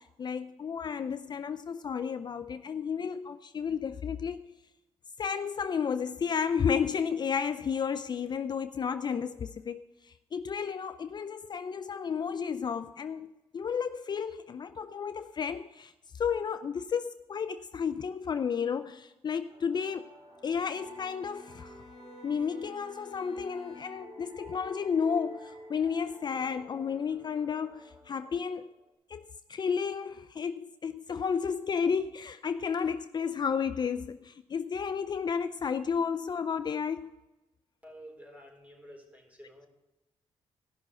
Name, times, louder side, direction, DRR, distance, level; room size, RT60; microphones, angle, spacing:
voice 1, 0.0-4.5 5.2-20.1 20.4-21.7 22.2-28.7 29.1-37.1, left 6 dB, 40° left, 0.5 m, -32 dB
sound 1, 19.5-28.9, right 1 dB, 65° right, 4.4 m, -51 dB
Bowed string instrument, 20.2-24.3, left 3 dB, 60° left, 2.3 m, -54 dB
voice 2, 37.8-39.7, equal, 15° right, 4.3 m, -50 dB
16.5 x 6.2 x 5.5 m
cardioid pair, 75°, 11 cm